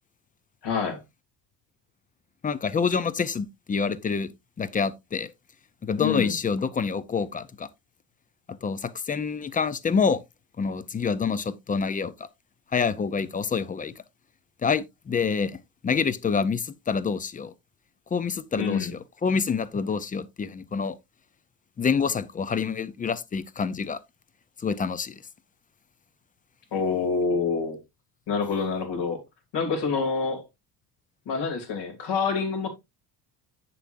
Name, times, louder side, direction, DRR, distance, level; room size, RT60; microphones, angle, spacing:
voice 1, 0.6-1.0 6.0-6.4 18.6-18.9 26.7-27.8 28.3-29.2 29.5-30.4 31.3-32.7, left 5 dB, 70° left, 2.7 m, -27 dB
voice 2, 2.4-4.3 4.6-5.3 5.8-7.7 8.5-10.2 10.6-12.1 12.7-13.9 14.6-15.6 15.8-17.5 18.1-18.9 19.2-21.0 21.8-24.0 24.6-25.2, left 5 dB, 20° left, 0.4 m, -27 dB
8.2 x 6.9 x 2.5 m
cardioid pair, 120°, 43 cm